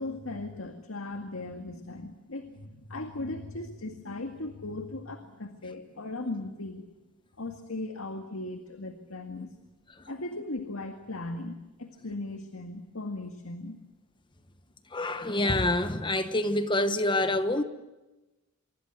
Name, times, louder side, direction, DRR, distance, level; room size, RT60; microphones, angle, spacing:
voice 1, 0.0-6.8 7.4-9.5 10.1-13.8, left 2 dB, 85° left, 2.0 m, -38 dB
voice 2, 14.9-17.6, left 1 dB, 25° left, 1.1 m, -26 dB
25.5 x 23.5 x 8.1 m
head